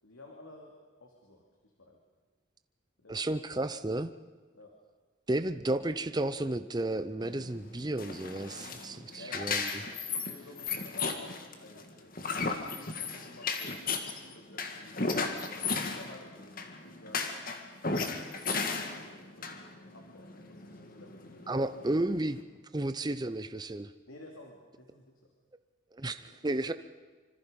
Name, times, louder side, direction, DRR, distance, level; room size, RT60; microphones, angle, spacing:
voice 1, 0.0-1.4 1.8-2.0 3.0-3.5 4.5-4.7 9.1-12.1 12.5-15.3 15.7-16.5 16.8-17.3 18.7-19.6 19.9-21.7 24.1-25.1 26.3-26.5, left 1 dB, 85° left, 0 dB, 2.9 m, -53 dB
voice 2, 3.1-4.1 5.3-9.8 21.5-22.4 22.7-23.9 25.9-26.7, right 1 dB, 20° right, 11 dB, 0.6 m, -32 dB
sound 1, 7.2-22.4, left 4 dB, 45° left, 1.9 m, -36 dB
25.5 x 25.5 x 5.3 m, 1.4 s
head